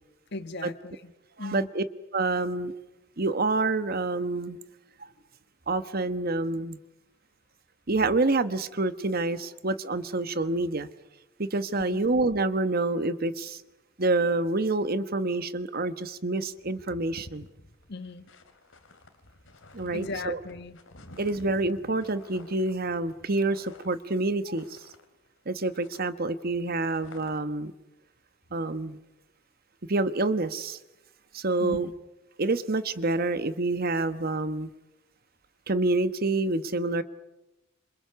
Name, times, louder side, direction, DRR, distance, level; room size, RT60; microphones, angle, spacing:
voice 1, 0.3-1.1 1.4-1.7 11.9-12.0 17.9-18.3 19.9-20.8 31.6-31.9, left 3 dB, 60° left, 11 dB, 1.5 m, -37 dB
voice 2, 1.4-1.8 2.1-2.7 3.2-4.6 5.7-6.8 7.9-10.9 11.4-13.6 14.0-17.5 19.7-20.4 21.2-24.8 25.5-27.7 28.5-29.0 29.9-30.8 31.3-31.9 32.4-34.7 35.7-37.0, right 2 dB, 50° right, 12 dB, 1.3 m, -27 dB
sound 1, 16.1-16.2 16.5-25.4 25.6-27.6, left 1 dB, 90° left, 3.0 m, -52 dB
27.5 x 26.5 x 6.9 m, 0.97 s
head